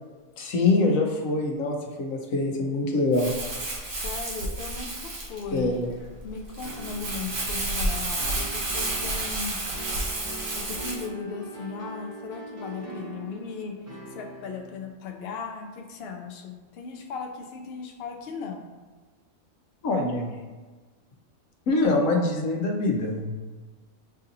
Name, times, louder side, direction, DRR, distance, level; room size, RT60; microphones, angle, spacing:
voice 1, 0.4-3.3 5.5-5.9 19.8-20.3 21.7-23.3, left 2 dB, 80° left, 1 dB, 1.1 m, -24 dB
Crumpling crinkling, 3.1-11.1, right 2 dB, 55° right, 1.0 m, -31 dB
voice 2, 3.8-5.8 6.2-9.6 10.5-18.7, left 5 dB, 60° left, 2 dB, 0.7 m, -37 dB
sound 1, 6.6-14.9, right 1 dB, 25° right, 0.3 m, -42 dB
6.4 x 2.7 x 2.6 m, 1.4 s
omnidirectional pair, 1.4 m